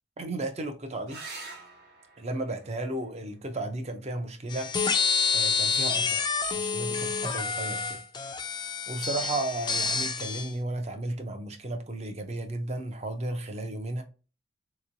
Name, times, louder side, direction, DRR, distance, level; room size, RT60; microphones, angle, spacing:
voice 1, 0.2-1.2 2.2-4.8 5.3-6.2 6.5-8.0 8.9-14.0, right 2 dB, 35° right, 0.6 m, -34 dB
sound 1, 1.1-6.1 8.0-8.6 12.1-12.2 12.5-12.6, right 3 dB, 55° right, 1.1 m, -49 dB
sound 2, 4.5-10.5, left 5 dB, 25° left, 0.4 m, -28 dB
3.6 x 3.0 x 2.6 m
head